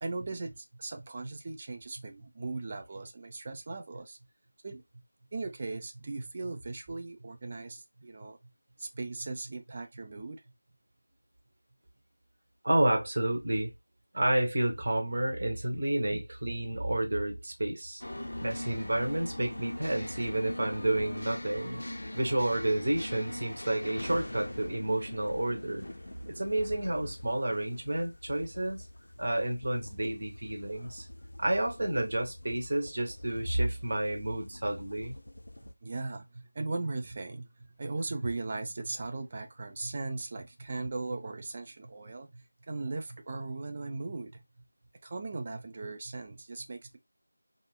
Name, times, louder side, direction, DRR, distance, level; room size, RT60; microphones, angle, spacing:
voice 1, 0.0-4.2 4.6-4.8 5.3-8.4 8.8-10.4 16.1-16.2 35.8-44.4 45.0-47.0, right 3 dB, 25° right, 0.3 m, -38 dB
voice 2, 12.6-13.7 14.1-18.0 18.4-21.8 22.1-25.8 26.3-28.9 29.2-31.1 31.4-35.2, right 1 dB, 45° right, 0.7 m, -30 dB
sound 1, 18.0-35.7, left 1 dB, 60° left, 0.4 m, -42 dB
2.8 x 2.0 x 2.2 m
figure-of-eight pair, 170°, 0 cm